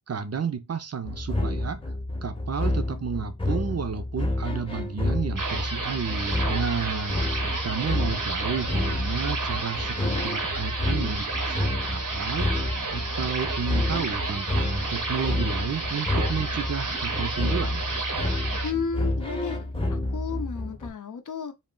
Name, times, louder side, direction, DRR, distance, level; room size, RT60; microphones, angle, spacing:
voice 1, 0.1-1.8 2.2-12.5 12.9-17.9, right 6 dB, 50° right, 0.5 m, -32 dB
sound 1, 1.1-20.9, left 1 dB, 15° left, 0.7 m, -29 dB
sound 2, 5.4-18.7, right 3 dB, 80° right, 0.8 m, -31 dB
voice 2, 18.6-19.6 19.9-21.5, left 6 dB, 75° left, 0.5 m, -32 dB
2.3 x 2.1 x 3.6 m
wide cardioid pair, 45°, 32 cm